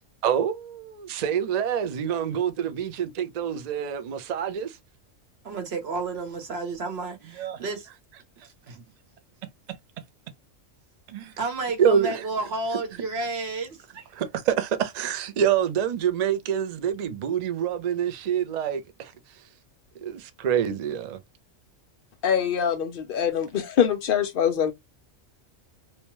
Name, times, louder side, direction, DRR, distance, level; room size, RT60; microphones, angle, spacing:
voice 1, 0.2-4.8 7.4-7.6 11.1-11.3 11.8-12.2 14.1-19.4 20.0-21.2, right 8 dB, 85° right, 0.3 m, -26 dB
voice 2, 5.4-7.9 8.7-8.8 11.4-14.0, right 3 dB, 55° right, 1.1 m, -31 dB
voice 3, 22.2-24.7, left 8 dB, 65° left, 0.5 m, -24 dB
2.8 x 2.2 x 2.9 m
omnidirectional pair, 1.4 m